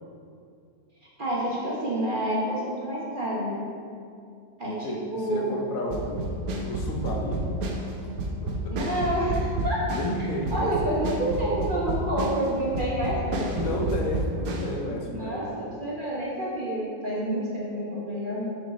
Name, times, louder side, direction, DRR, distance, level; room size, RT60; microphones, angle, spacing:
voice 1, 1.2-3.6 4.6-5.5 8.7-13.8 15.1-18.5, right 1 dB, 40° right, -6 dB, 1.0 m, -29 dB
voice 2, 4.6-6.3 6.6-7.5 8.4-8.5 9.9-11.1 13.5-15.5, left 1 dB, 65° left, 0 dB, 1.1 m, -32 dB
sound 1, 5.9-14.8, right 1 dB, 70° right, 1.1 m, -30 dB
6.3 x 4.7 x 4.2 m, 2.4 s
omnidirectional pair, 1.7 m